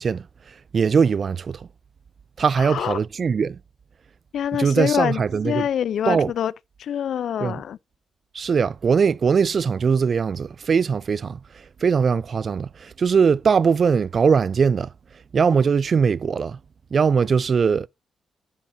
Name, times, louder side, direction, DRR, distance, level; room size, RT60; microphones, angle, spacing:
voice 1, 0.0-1.7 2.4-3.6 4.5-5.6 6.1-6.3 7.4-7.6 8.3-14.9 15.3-16.6 16.9-17.9, right 6 dB, 50° right, 0.4 m, -21 dB
voice 2, 2.6-3.0 4.3-6.5 6.8-7.8, left 9 dB, 75° left, 0.4 m, -25 dB
10.5 x 8.3 x 2.6 m
cardioid pair, 90°, 0 cm